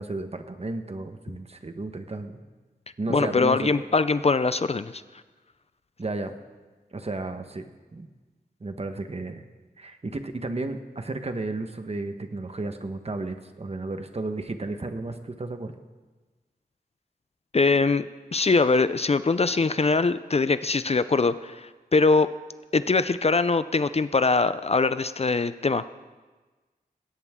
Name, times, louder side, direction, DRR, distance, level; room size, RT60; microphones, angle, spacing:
voice 1, 0.0-2.4 3.0-3.7 6.0-6.3 6.9-7.7 7.9-8.1 8.6-9.5 9.8-15.7, right 2 dB, 40° right, 7 dB, 1.2 m, -33 dB
voice 2, 3.1-5.0 17.5-18.1 18.3-22.3 22.7-25.9, left 3 dB, 40° left, 13 dB, 0.5 m, -22 dB
21.0 x 17.5 x 3.7 m, 1.3 s
wide cardioid pair, 90°, 16 cm